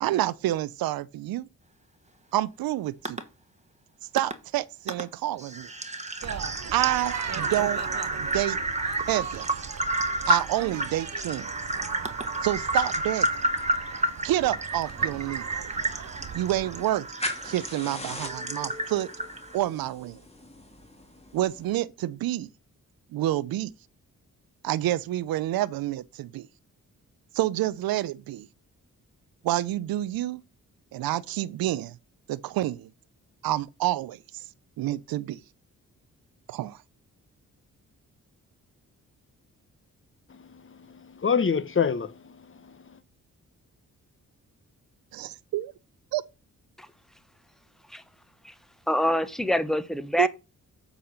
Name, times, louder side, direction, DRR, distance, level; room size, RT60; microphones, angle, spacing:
voice 1, 0.0-1.5 2.3-3.2 4.1-5.7 6.7-7.8 8.2-8.6 9.1-9.5 10.3-11.5 12.4-13.3 14.2-15.4 16.3-17.0 17.4-19.1 19.5-20.2 21.3-22.5 23.1-23.7 24.6-26.5 27.3-28.5 29.4-30.4 30.9-32.0 32.3-32.9 33.4-34.4 34.8-35.4 36.5-36.8 45.1-45.7 46.1-46.2 50.2-50.3, right 14 dB, 85° right, 0.6 m, -28 dB
sound 1, 3.1-3.2 4.2-4.3 4.9-5.0 5.4-19.6, right 1 dB, 20° right, 1.4 m, -30 dB
sound 2, 6.2-16.8, right 8 dB, 50° right, 0.7 m, -39 dB
sound 3, 14.8-21.7, left 1 dB, 15° left, 2.2 m, -41 dB
voice 2, 40.3-42.8, left 6 dB, 35° left, 1.0 m, -28 dB
voice 3, 48.9-50.3, equal, ahead, 1.1 m, -25 dB
7.9 x 4.2 x 6.3 m
supercardioid pair, 45°, 35 cm